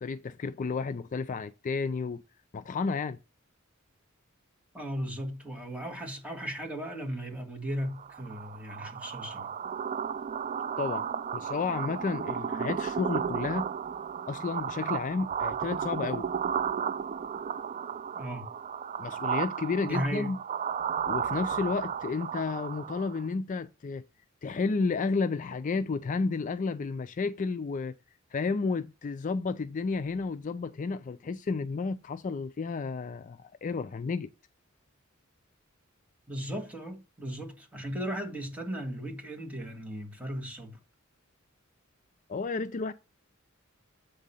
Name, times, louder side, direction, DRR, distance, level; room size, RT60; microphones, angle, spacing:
voice 1, 0.0-2.2 2.5-3.2 10.8-11.1 11.3-13.7 14.3-16.3 19.0-20.4 21.1-24.0 24.4-27.9 28.3-34.3 42.3-42.9, left 4 dB, 40° left, 0.4 m, -32 dB
voice 2, 4.7-9.5 18.1-18.5 19.8-20.3 36.3-40.8, equal, 5° right, 1.7 m, -36 dB
sound 1, 7.9-23.3, right 7 dB, 40° right, 0.3 m, -34 dB
8.3 x 3.8 x 5.4 m
head